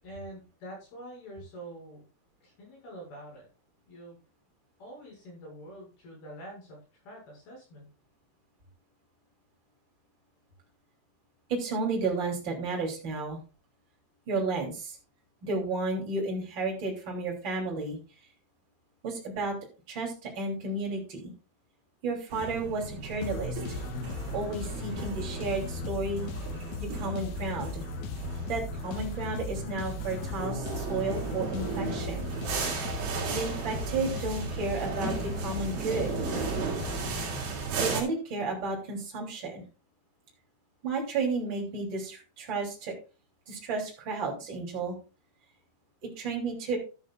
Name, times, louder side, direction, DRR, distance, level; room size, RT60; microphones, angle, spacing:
voice 1, 0.0-2.1 2.4-3.5 3.9-4.2 4.8-7.9, right 1 dB, 45° left, -2 dB, 8.2 m, -46 dB
voice 2, 11.5-13.4 14.3-15.0 15.4-18.0 19.0-19.5 19.9-21.3 22.0-23.6 24.3-26.3 26.8-27.8 28.5-32.3 33.3-36.1 37.8-39.6 40.8-42.9 43.5-45.0 46.0-46.8, right 3 dB, 30° right, -1 dB, 3.0 m, -32 dB
sound 1, 22.3-38.0, right 4 dB, 65° right, 5.1 m, -35 dB
sound 2, 23.2-37.8, left 5 dB, 80° left, 2.8 m, -38 dB
13.0 x 11.5 x 2.5 m, 0.34 s
omnidirectional pair, 6.0 m